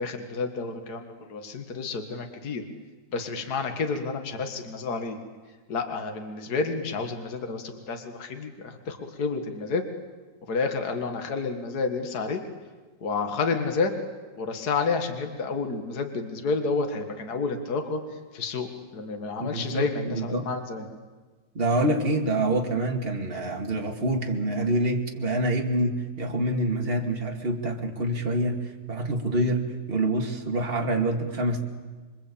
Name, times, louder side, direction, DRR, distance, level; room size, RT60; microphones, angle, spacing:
voice 1, 0.0-2.6 3.1-5.2 5.7-9.8 10.5-12.4 13.0-14.0 14.4-18.0 18.3-18.7 18.9-20.9, left 4 dB, 55° left, 6 dB, 2.3 m, -30 dB
voice 2, 19.4-20.5 21.5-31.6, right 1 dB, 30° right, 2 dB, 2.5 m, -26 dB
27.0 x 24.0 x 8.6 m, 1.4 s
omnidirectional pair, 2.0 m